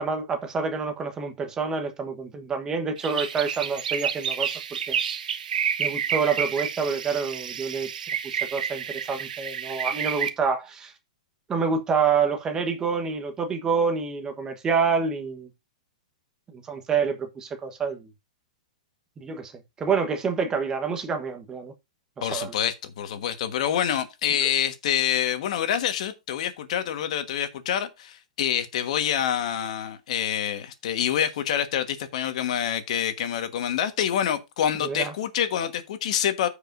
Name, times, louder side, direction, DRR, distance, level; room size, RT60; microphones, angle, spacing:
voice 1, 0.0-4.5 4.9-5.0 5.8-7.9 8.2-10.9 11.5-15.5 16.5-18.1 19.2-21.7 22.2-22.5 34.8-35.1, right 5 dB, 15° right, 1.2 m, -27 dB
sound 1, 3.0-10.3, right 8 dB, 80° right, 1.1 m, -30 dB
voice 2, 22.2-36.5, left 9 dB, 55° left, 1.4 m, -26 dB
14.5 x 5.0 x 2.6 m
hypercardioid pair, 150°, 4 cm